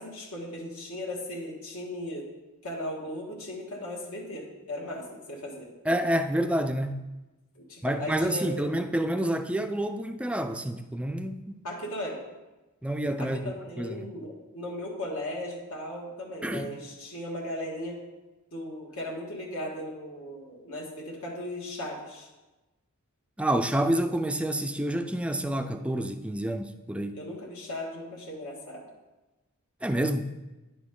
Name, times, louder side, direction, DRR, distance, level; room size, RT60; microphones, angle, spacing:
voice 1, 0.0-2.3 2.6-5.7 7.5-8.5 11.6-12.2 13.2-18.0 18.5-22.3 27.1-28.8, left 1 dB, 70° left, 1.6 m, -37 dB
voice 2, 5.9-7.1 7.8-11.6 12.8-13.4 13.8-14.1 16.4-16.7 23.4-27.2 29.8-30.3, right 1 dB, 5° right, 0.3 m, -28 dB
10.0 x 6.0 x 3.7 m
head